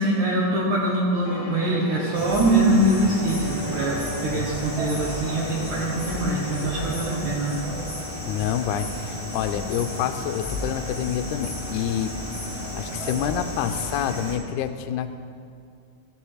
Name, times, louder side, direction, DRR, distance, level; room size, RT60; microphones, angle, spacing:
voice 1, 0.0-7.6, right 1 dB, 75° right, -6 dB, 2.9 m, -23 dB
sound 1, 1.2-7.0, left 1 dB, 60° left, 2.1 m, -36 dB
sound 2, 2.1-14.4, left 1 dB, 10° left, 1.8 m, -33 dB
voice 2, 8.3-12.1 12.8-15.1, left 10 dB, 80° left, 8 dB, 2.0 m, -27 dB
17.0 x 6.9 x 4.9 m, 2.3 s
omnidirectional pair, 3.6 m